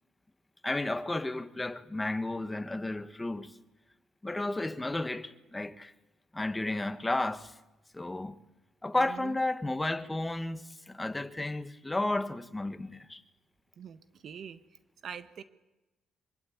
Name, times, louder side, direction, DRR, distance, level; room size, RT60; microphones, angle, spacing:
voice 1, 0.6-3.5 4.2-5.9 6.3-7.5 7.9-8.3 8.8-13.2, left 2 dB, 15° left, 1.5 m, -33 dB
voice 2, 8.9-9.4 13.8-14.6 15.0-15.4, right 7 dB, 60° right, 1.4 m, -44 dB
24.5 x 24.5 x 8.7 m
cardioid pair, 90°, 0 cm